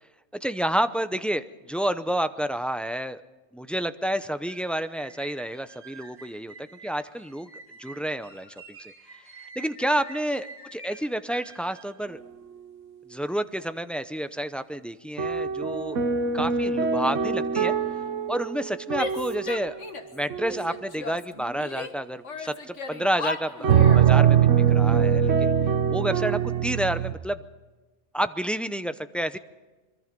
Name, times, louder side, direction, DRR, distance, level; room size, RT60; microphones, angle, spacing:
voice 1, 0.4-3.2 3.5-7.5 7.8-8.9 9.6-12.2 13.1-16.0 16.3-17.7 18.3-19.8 20.1-25.5 25.9-27.4 28.1-29.4, right 1 dB, ahead, 11 dB, 0.4 m, -29 dB
sound 1, 4.2-12.0, right 2 dB, 60° right, 5.2 m, -47 dB
sound 2, 15.2-19.7 20.3-20.7 23.6-27.1, right 8 dB, 85° right, 1.4 m, -22 dB
Female speech woman speaking / Yell, 19.0-20.2 20.4-21.9 22.2-24.1, left 3 dB, 80° left, 1.9 m, -36 dB
25.5 x 22.5 x 5.3 m, 1.2 s
omnidirectional pair, 1.2 m